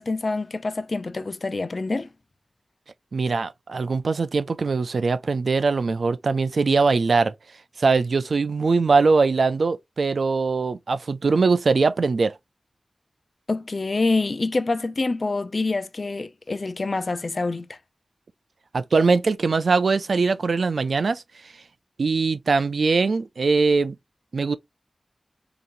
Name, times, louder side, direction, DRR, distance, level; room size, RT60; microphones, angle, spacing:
voice 1, 0.0-2.1 13.5-17.8, left 3 dB, 55° left, 0.5 m, -26 dB
voice 2, 3.1-7.3 7.8-12.3 18.7-21.2 22.0-24.0 24.3-24.6, right 4 dB, 80° right, 0.4 m, -21 dB
5.0 x 3.0 x 2.6 m
wide cardioid pair, 75°, 0 cm